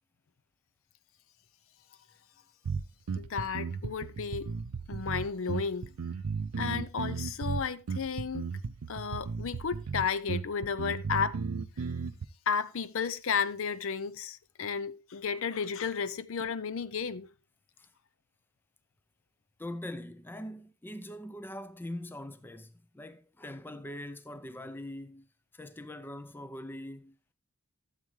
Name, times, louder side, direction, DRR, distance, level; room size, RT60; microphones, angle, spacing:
sound 1, 2.6-12.2, right 5 dB, 75° right, 0.5 m, -35 dB
voice 1, 3.2-4.5 4.9-5.9 6.6-8.5 8.9-11.4 12.5-17.3, left 6 dB, 60° left, 0.5 m, -33 dB
voice 2, 19.6-25.3 25.5-27.2, left 1 dB, 10° left, 0.4 m, -42 dB
12.5 x 7.5 x 3.2 m
head